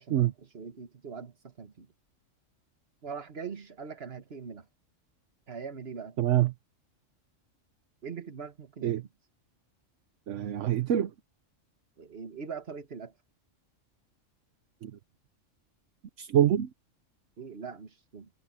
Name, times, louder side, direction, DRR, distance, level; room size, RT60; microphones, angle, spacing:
voice 1, 0.0-1.9 3.0-4.7 5.5-6.2 8.0-9.0 12.0-13.1 17.4-18.3, right 5 dB, 50° right, 1.8 m, -42 dB
voice 2, 6.2-6.5 8.8-9.0 10.3-11.1 14.8-14.9 16.2-16.7, right 11 dB, 70° right, 1.1 m, -25 dB
omnidirectional pair, 1.3 m